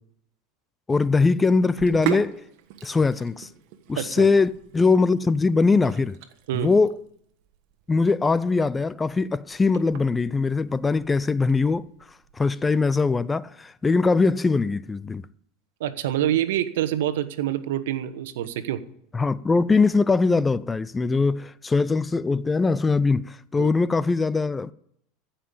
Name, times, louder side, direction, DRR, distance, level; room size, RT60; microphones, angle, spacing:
voice 1, 0.9-2.4 2.8-3.5 3.9-6.2 6.5-7.0 7.9-11.9 12.4-15.2 19.1-24.7, left 4 dB, 15° left, 0.5 m, -21 dB
Sink (filling or washing), 1.6-12.5, right 12 dB, 60° right, 1.5 m, -39 dB
voice 2, 4.0-4.3 6.5-6.7 15.8-18.8 23.6-23.7, right 11 dB, 75° right, 1.1 m, -26 dB
14.5 x 5.7 x 8.6 m
hypercardioid pair, 110°, 0 cm